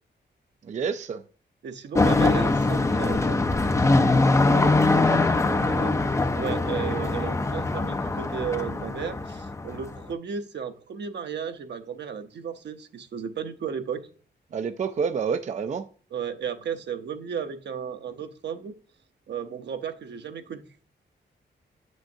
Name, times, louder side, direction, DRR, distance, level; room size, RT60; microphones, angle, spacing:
voice 1, 0.7-1.2 4.5-5.9 14.5-15.8, right 6 dB, 40° right, 0.4 m, -30 dB
voice 2, 1.6-3.4 6.3-14.1 16.1-18.7 19.3-20.6, right 7 dB, 70° right, 0.8 m, -34 dB
sound 1, 2.0-10.0, left 3 dB, 15° left, 0.5 m, -23 dB
7.4 x 6.3 x 2.6 m
wide cardioid pair, 150°, 19 cm